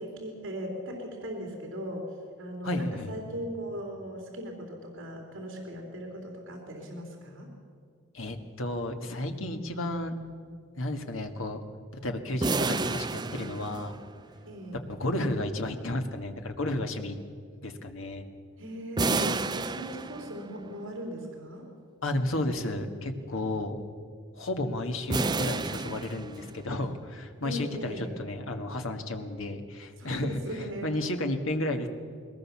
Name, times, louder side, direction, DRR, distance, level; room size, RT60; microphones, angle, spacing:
voice 1, 0.0-2.1 2.4-7.5 14.5-14.8 18.6-21.7 27.4-28.1 30.0-31.0, equal, 70° right, 1 dB, 3.6 m, -38 dB
voice 2, 2.6-3.1 8.1-10.2 10.8-11.6 12.0-14.0 14.9-17.2 17.6-18.2 22.0-23.8 24.3-31.9, left 1 dB, 80° left, 5 dB, 1.7 m, -32 dB
sound 1, 12.4-14.3 19.0-20.6 25.1-26.7, right 3 dB, 20° right, 0.4 m, -30 dB
21.0 x 19.0 x 7.3 m, 2.1 s
head